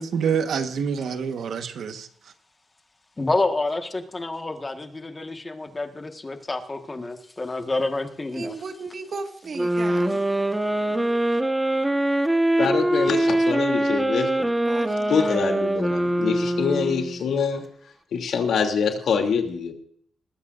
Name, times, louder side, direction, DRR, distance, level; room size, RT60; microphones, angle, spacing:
voice 1, 0.0-2.1, right 6 dB, 70° right, 1.3 m, -26 dB
voice 2, 3.2-8.5 10.4-11.1, left 2 dB, 20° left, 1.5 m, -29 dB
voice 3, 8.3-10.2 14.6-15.2, right 4 dB, 45° right, 1.8 m, -35 dB
sound 1, 9.5-17.2, right 1 dB, 10° right, 1.2 m, -23 dB
voice 4, 12.6-14.5 15.1-17.6 18.1-19.7, left 6 dB, 75° left, 2.9 m, -25 dB
20.5 x 15.0 x 2.6 m
cardioid pair, 130°, 0 cm